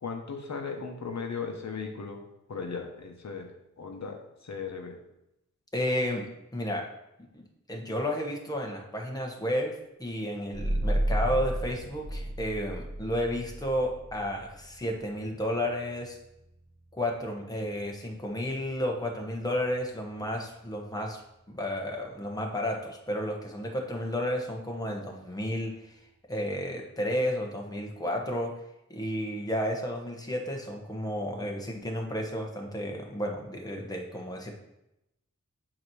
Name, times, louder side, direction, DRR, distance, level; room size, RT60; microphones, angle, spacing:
voice 1, 0.0-2.2 2.5-3.5 3.8-5.0, left 5 dB, 65° left, 2 dB, 1.0 m, -37 dB
voice 2, 5.7-6.9 7.3-16.2 16.9-21.2 21.5-26.0 26.3-28.5 28.9-34.5, equal, 10° left, 1 dB, 1.0 m, -32 dB
sound 1, 10.5-21.8, right 1 dB, 35° right, 2.3 m, -35 dB
8.3 x 3.0 x 6.1 m, 0.87 s
wide cardioid pair, 110°, 30 cm